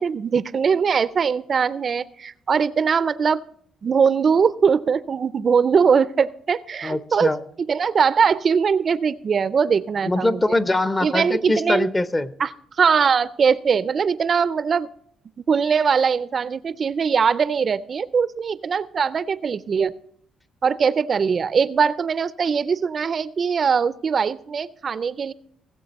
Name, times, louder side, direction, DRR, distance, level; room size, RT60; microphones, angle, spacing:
voice 1, 0.0-3.4 3.8-7.3 7.6-10.4 11.0-11.9 12.4-12.5 12.8-14.9 15.4-19.9 20.6-25.3, right 6 dB, 45° right, 0.4 m, -21 dB
voice 2, 6.8-7.4 10.1-12.3, left 2 dB, 20° left, 0.6 m, -22 dB
19.0 x 7.3 x 4.0 m
cardioid pair, 90°, 0 cm